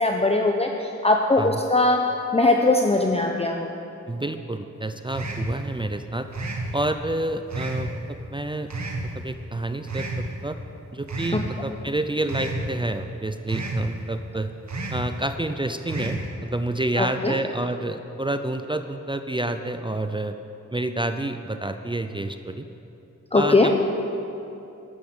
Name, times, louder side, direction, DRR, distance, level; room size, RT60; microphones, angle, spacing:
voice 1, 0.0-2.1 2.3-3.7 11.3-11.4 17.0-17.4 23.3-23.7, left 2 dB, 20° left, 2 dB, 0.8 m, -20 dB
voice 2, 4.1-6.3 6.7-7.9 8.3-8.7 9.1-10.6 10.9-14.5 14.9-20.4 20.7-22.7 23.3-23.9, right 2 dB, 15° right, 8 dB, 0.5 m, -28 dB
sound 1, 5.1-5.6 6.3-6.7 7.5-7.9 8.7-9.1 9.9-10.2 11.1-11.5 12.3-12.7 13.5-13.9 14.7-15.1 15.9-16.3, right 2 dB, 65° right, 1.9 m, -30 dB
13.0 x 12.5 x 7.9 m, 2.9 s
wide cardioid pair, 115°, 30 cm